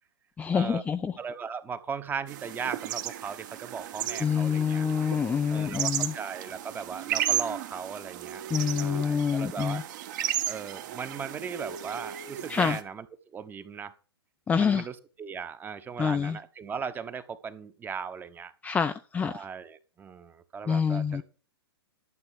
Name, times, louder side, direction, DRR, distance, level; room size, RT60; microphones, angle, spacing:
voice 1, 0.4-1.2 4.2-6.1 8.5-9.8 12.5-12.8 14.5-14.9 16.0-16.4 18.6-19.5 20.7-21.2, left 6 dB, 10° left, 0.5 m, -27 dB
voice 2, 1.2-4.9 5.5-8.4 8.8-9.8 10.5-13.0 13.3-13.9 14.6-18.5 19.3-21.2, right 6 dB, 15° right, 1.1 m, -37 dB
sound 1, 2.3-12.8, right 11 dB, 45° right, 1.6 m, -34 dB
12.0 x 7.7 x 5.8 m
figure-of-eight pair, 110°, 13 cm